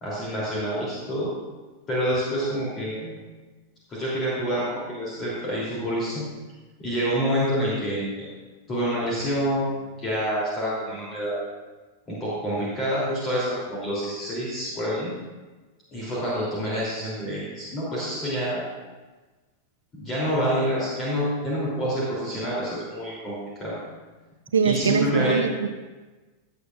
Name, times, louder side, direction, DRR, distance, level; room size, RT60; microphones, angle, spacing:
voice 1, 0.0-1.3 1.9-3.2 3.9-6.2 6.8-8.3 8.7-11.4 12.1-15.1 15.9-18.6 19.9-23.8 24.6-25.4, equal, 25° left, -7 dB, 3.3 m, -27 dB
voice 2, 24.5-25.7, right 6 dB, 70° right, 10 dB, 0.6 m, -22 dB
16.5 x 8.3 x 2.5 m, 1.3 s
figure-of-eight pair, 90°, 0 cm